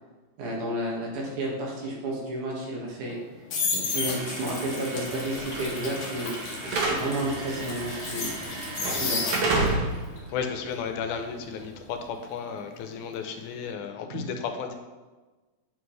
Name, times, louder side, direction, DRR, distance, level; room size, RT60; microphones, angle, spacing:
voice 1, 0.4-3.2 3.7-8.3 8.8-9.4 14.1-14.2, right 1 dB, 85° right, -3 dB, 3.1 m, -32 dB
sound 1, 3.1-9.8 10.2-13.1 13.3-13.7, left 4 dB, 60° left, 1.3 m, -33 dB
Slam / Alarm, 3.9-12.0, right 2 dB, 65° right, 2.3 m, -32 dB
voice 2, 10.3-14.7, left 6 dB, 85° left, 5 dB, 2.1 m, -33 dB
8.9 x 4.5 x 3.2 m, 1.2 s
omnidirectional pair, 3.5 m